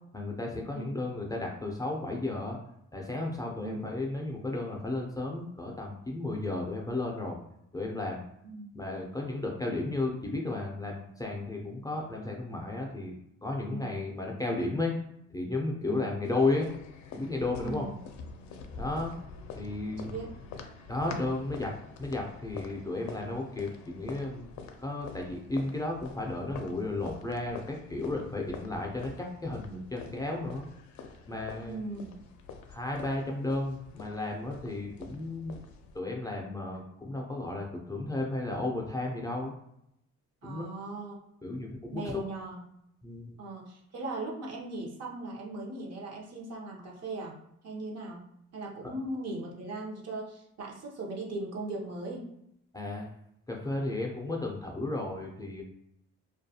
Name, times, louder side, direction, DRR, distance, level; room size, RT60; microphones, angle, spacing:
voice 1, 0.1-2.6 2.9-7.4 7.7-8.2 8.7-13.1 13.4-14.9 15.3-16.7 17.1-17.9 18.8-19.1 19.6-20.1 20.9-21.7 22.0-24.5 24.8-30.7 31.3-31.8 32.7-35.6 35.9-39.5 40.4-40.7 41.4-42.2 43.0-43.3 48.8-48.9 52.7-53.0 53.5-55.6, left 2 dB, 10° left, -1 dB, 0.4 m, -33 dB
sound 1, 16.2-36.0, left 5 dB, 70° left, 0.5 m, -46 dB
voice 2, 17.6-18.0 20.0-20.3 31.7-32.2 40.4-41.1 41.9-42.6 43.4-48.3 48.5-52.3, right 2 dB, 55° right, -2 dB, 0.8 m, -39 dB
2.3 x 2.3 x 2.7 m, 0.77 s
cardioid pair, 90°, 30 cm